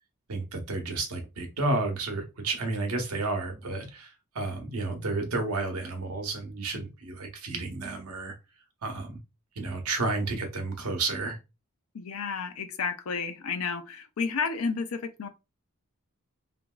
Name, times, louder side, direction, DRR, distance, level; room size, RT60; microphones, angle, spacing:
voice 1, 0.3-8.4 8.8-9.2 9.6-11.4, right 3 dB, 85° right, 0.8 m, -31 dB
voice 2, 11.9-15.3, left 5 dB, 70° left, 0.5 m, -31 dB
2.9 x 2.5 x 2.3 m
head